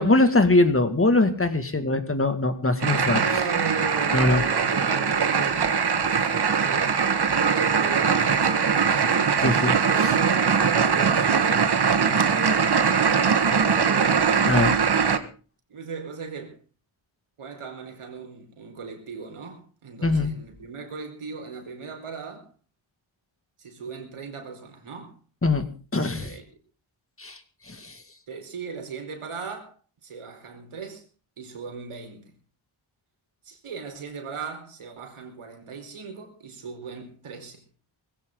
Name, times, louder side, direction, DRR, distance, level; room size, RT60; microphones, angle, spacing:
voice 1, 0.0-3.2 4.1-4.4 9.4-9.8 14.5-14.7 20.0-20.3 25.4-25.6 25.9-26.3 27.2-27.4 27.7-28.0, left 2 dB, 25° left, 2.3 m, -22 dB
sound 1, 2.8-15.2, right 6 dB, 50° right, 1.7 m, -21 dB
voice 2, 3.2-5.8 6.1-7.1 7.4-9.3 9.7-14.2 15.7-16.6 17.4-22.5 23.6-25.2 26.2-26.4 28.3-29.7 30.0-31.0 31.4-32.3 33.4-37.6, right 5 dB, 80° right, 4.8 m, -37 dB
20.0 x 16.0 x 3.9 m
wide cardioid pair, 100°, 49 cm